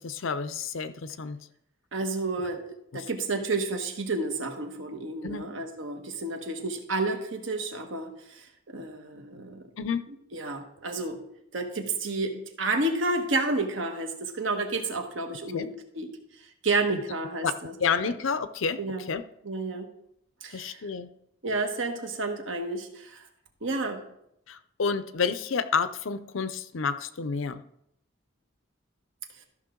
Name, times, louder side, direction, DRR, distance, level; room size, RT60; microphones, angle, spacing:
voice 1, 0.0-1.4 2.9-3.1 5.2-5.4 9.8-10.0 15.5-15.7 16.9-17.0 17.4-17.5 17.8-19.2 20.5-21.1 24.5-27.6, left 5 dB, 85° left, 12 dB, 0.6 m, -30 dB
voice 2, 1.9-2.6 2.9-9.6 10.3-11.2 11.5-16.1 16.6-17.7 18.0-18.1 18.8-19.1 19.4-19.9 20.4-20.8 21.4-23.3 23.6-24.0, right 2 dB, 80° right, 5 dB, 1.3 m, -30 dB
13.5 x 5.8 x 3.8 m, 0.77 s
head